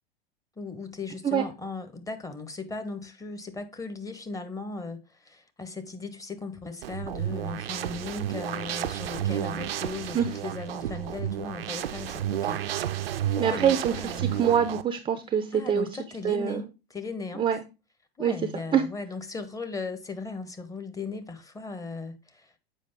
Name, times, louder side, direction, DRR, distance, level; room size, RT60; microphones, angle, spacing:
voice 1, 0.6-14.4 15.5-17.5 18.2-22.6, left 4 dB, 10° left, 0.8 m, -37 dB
sound 1, 6.8-14.8, right 11 dB, 65° right, 0.5 m, -31 dB
voice 2, 13.4-15.9 16.2-16.7 17.4-17.6 18.2-18.3 18.7-18.8, right 8 dB, 15° right, 0.5 m, -25 dB
7.4 x 5.0 x 3.5 m
figure-of-eight pair, 85°, 31 cm